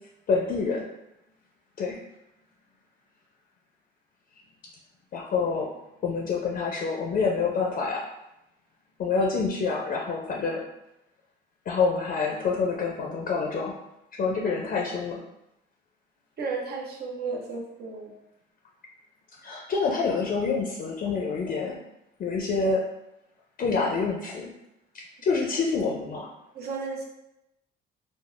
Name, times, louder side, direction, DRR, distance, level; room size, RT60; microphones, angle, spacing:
voice 1, 0.3-0.8 1.8-2.0 5.1-5.7 6.0-8.0 9.0-10.6 11.7-13.7 14.2-15.2 19.4-21.8 22.2-22.8 23.6-24.5 25.2-26.3, left 4 dB, 50° left, -1 dB, 0.5 m, -27 dB
voice 2, 16.4-18.1 26.5-27.0, right 4 dB, 55° right, -1 dB, 0.7 m, -33 dB
3.4 x 2.0 x 2.4 m, 0.87 s
cardioid pair, 80°, 19 cm